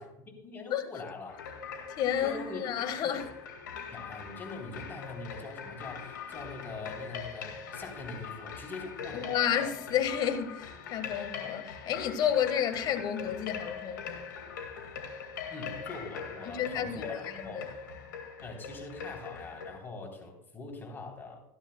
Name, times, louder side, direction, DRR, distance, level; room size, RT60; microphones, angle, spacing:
voice 1, 0.4-1.4 2.2-3.3 3.9-9.6 15.5-17.7 18.4-21.4, left 3 dB, 20° left, 3.4 m, -43 dB
sound 1, 1.3-19.8, left 6 dB, 80° left, 1.9 m, -42 dB
voice 2, 2.0-3.3 9.1-14.2 16.5-17.6, left 9 dB, 45° left, 1.4 m, -31 dB
15.5 x 11.5 x 2.2 m
hypercardioid pair, 95°, 10 cm